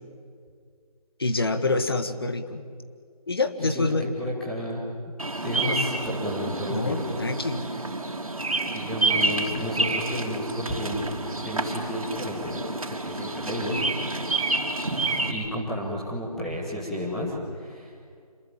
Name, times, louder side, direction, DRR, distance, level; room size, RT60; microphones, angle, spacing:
voice 1, 1.2-2.6 3.3-4.1 6.7-7.7, left 3 dB, 40° left, 9 dB, 1.6 m, -26 dB
voice 2, 3.6-4.8 5.3-7.0 8.5-11.0 11.4-13.8 15.3-17.9, left 1 dB, ahead, -6 dB, 1.7 m, -32 dB
Bird vocalization bird call bird song, 5.2-15.3, right 2 dB, 60° right, 3.7 m, -29 dB
27.5 x 21.0 x 8.8 m, 2.2 s
figure-of-eight pair, 170°, 20 cm